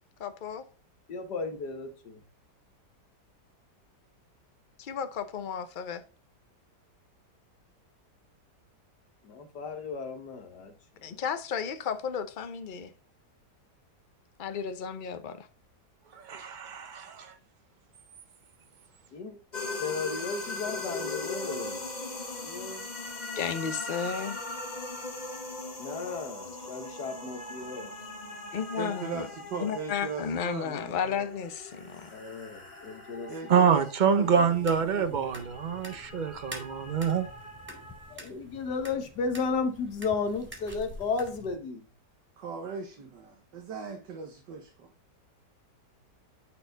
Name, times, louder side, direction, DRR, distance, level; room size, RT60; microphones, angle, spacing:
voice 1, 0.2-0.7 4.8-6.0 11.0-12.9 14.4-15.5 23.4-24.4 28.5-29.3 29.6-32.1, left 7 dB, 50° left, 0.5 m, -33 dB
voice 2, 1.1-2.1 9.3-10.7 19.1-19.4 19.8-21.8 22.4-22.8 25.8-27.9 32.1-33.3 38.2-41.8, left 4 dB, 70° left, 1.7 m, -34 dB
voice 3, 16.1-17.3 33.5-37.3, right 6 dB, 50° right, 0.5 m, -26 dB
sound 1, 19.5-38.2, left 2 dB, 25° left, 1.4 m, -40 dB
voice 4, 28.8-31.3 33.3-35.3 42.4-44.9, right 5 dB, 80° right, 1.7 m, -39 dB
sound 2, 34.6-41.6, left 1 dB, 5° right, 2.1 m, -47 dB
9.6 x 4.3 x 3.9 m
omnidirectional pair, 1.9 m